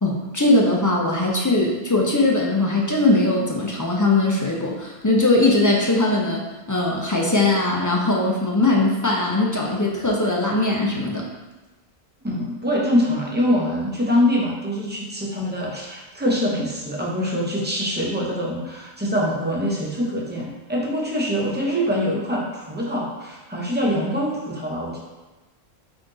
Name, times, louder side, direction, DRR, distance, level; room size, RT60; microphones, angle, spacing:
voice 1, 0.0-6.4 6.7-11.2, left 2 dB, 25° left, -2 dB, 0.5 m, -20 dB
voice 2, 12.2-25.0, equal, 10° right, -3 dB, 0.7 m, -24 dB
3.9 x 3.5 x 3.8 m, 1.1 s
omnidirectional pair, 1.1 m